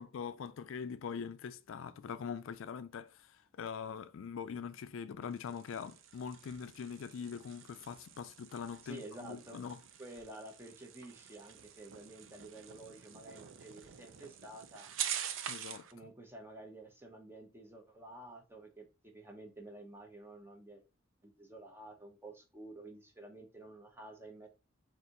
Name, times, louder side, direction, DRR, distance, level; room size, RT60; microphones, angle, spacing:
voice 1, 0.0-9.8 15.5-15.9, left 6 dB, 80° left, 0.4 m, -43 dB
sound 1, 5.2-15.9, right 9 dB, 75° right, 0.5 m, -46 dB
voice 2, 8.8-9.6 10.0-14.9 15.9-20.8 21.2-24.5, right 2 dB, 10° right, 0.8 m, -51 dB
4.2 x 2.6 x 3.8 m
head